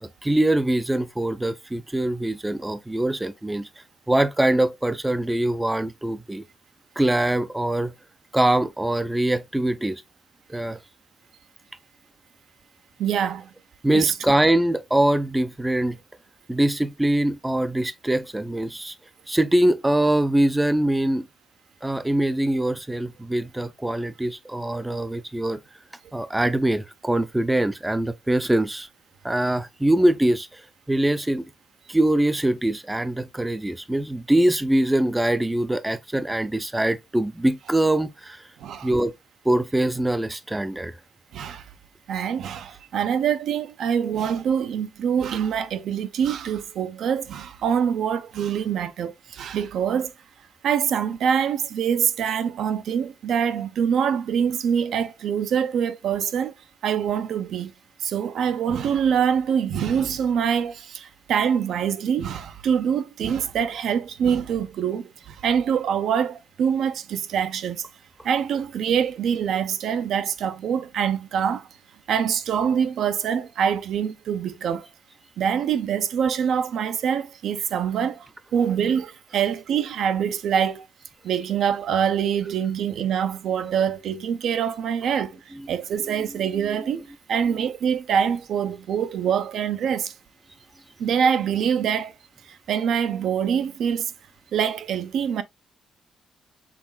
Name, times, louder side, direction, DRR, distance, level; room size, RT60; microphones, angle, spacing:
voice 1, 0.0-3.7 4.1-6.4 7.0-7.9 8.3-10.0 10.5-10.8 13.8-16.0 16.5-18.9 19.3-21.3 21.8-25.6 26.1-28.9 29.2-30.6 30.9-31.4 31.9-38.4 38.8-39.1 39.5-41.0, right 1 dB, 10° right, 0.4 m, -23 dB
voice 2, 13.0-13.5 13.9-14.1 38.6-38.9 41.3-41.7 42.1-50.1 50.6-56.5 56.8-57.7 58.0-67.9 68.2-71.7 72.1-74.9 75.4-78.3 78.5-80.8 81.2-87.0 87.3-90.1 91.0-92.1 92.5-94.1 94.5-95.4, right 8 dB, 70° right, 0.6 m, -24 dB
5.9 x 4.0 x 2.2 m
cardioid pair, 150°, 0 cm